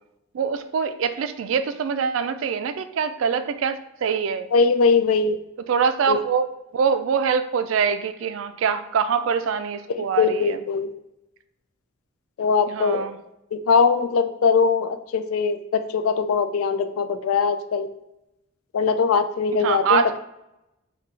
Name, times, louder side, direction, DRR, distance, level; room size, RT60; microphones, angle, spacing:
voice 1, 0.3-4.5 5.7-6.5 6.7-10.6 12.7-13.2 19.6-20.2, right 6 dB, 65° right, 11 dB, 0.3 m, -24 dB
voice 2, 4.5-5.4 6.1-6.2 10.0-10.9 12.4-13.1 13.5-17.9 18.7-20.2, left 5 dB, 90° left, 10 dB, 0.4 m, -21 dB
5.8 x 2.3 x 3.2 m, 0.89 s
head